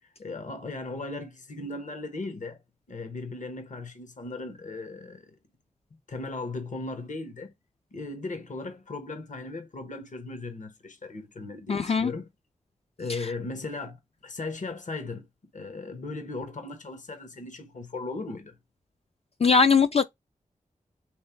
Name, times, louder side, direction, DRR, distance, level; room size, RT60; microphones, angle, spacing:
voice 1, 0.0-2.6 2.9-5.3 6.1-7.5 7.9-12.3 13.0-15.3 15.5-18.6, left 3 dB, 65° left, 1.1 m, -37 dB
voice 2, 11.7-12.1 13.1-13.2 19.4-20.0, left 5 dB, 45° left, 0.4 m, -21 dB
3.3 x 3.3 x 4.4 m
cardioid pair, 40°, 14 cm